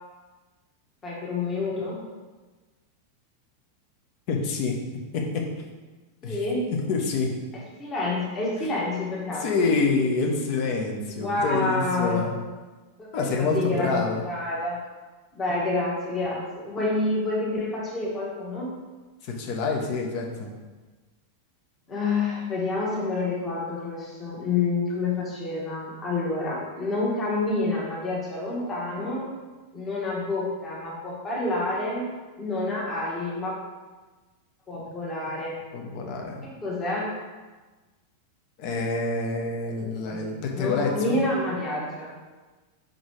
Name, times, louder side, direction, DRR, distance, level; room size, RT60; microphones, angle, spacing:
voice 1, 1.0-2.0 6.2-6.6 7.8-9.7 11.2-12.4 13.0-14.9 15.3-18.7 21.9-29.3 29.7-32.1 32.4-33.6 34.7-35.6 36.4-37.1 40.1-42.2, left 2 dB, 20° left, -4 dB, 1.5 m, -28 dB
voice 2, 4.3-4.8 5.1-5.4 6.2-6.4 6.7-7.3 8.5-8.7 9.4-12.3 13.1-14.2 19.2-20.5 35.7-36.4 38.6-41.2, left 4 dB, 45° left, 1 dB, 1.0 m, -27 dB
5.1 x 3.9 x 4.7 m, 1.3 s
figure-of-eight pair, 90°, 0 cm